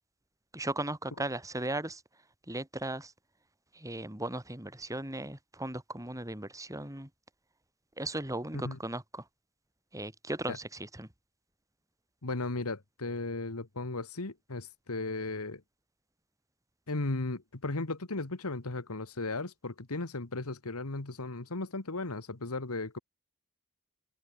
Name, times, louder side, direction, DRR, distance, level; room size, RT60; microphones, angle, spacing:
voice 1, 0.5-2.0 2.5-3.1 3.7-7.1 8.0-9.2 9.9-11.1, right 1 dB, 15° right, 4.1 m, -37 dB
voice 2, 12.2-15.6 16.9-23.0, left 2 dB, 75° left, 1.7 m, -36 dB
head